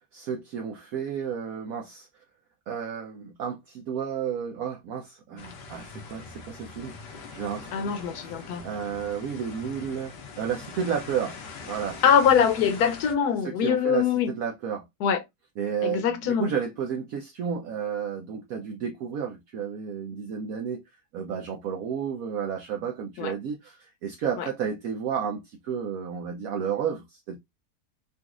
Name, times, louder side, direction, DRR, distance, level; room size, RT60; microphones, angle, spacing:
voice 1, 0.1-2.1 2.7-7.9 8.2-8.3 8.6-11.4 11.7-12.0 13.4-14.8 15.6-20.8 21.1-27.4, right 7 dB, 70° right, 0.9 m, -32 dB
sound 1, 5.4-13.1, left 4 dB, 90° left, 1.4 m, -42 dB
voice 2, 7.7-8.6 12.0-14.3 15.0-15.2 15.8-16.5 23.2-23.3 24.4-24.5, left 7 dB, 70° left, 1.2 m, -23 dB
3.9 x 2.4 x 2.4 m
omnidirectional pair, 1.8 m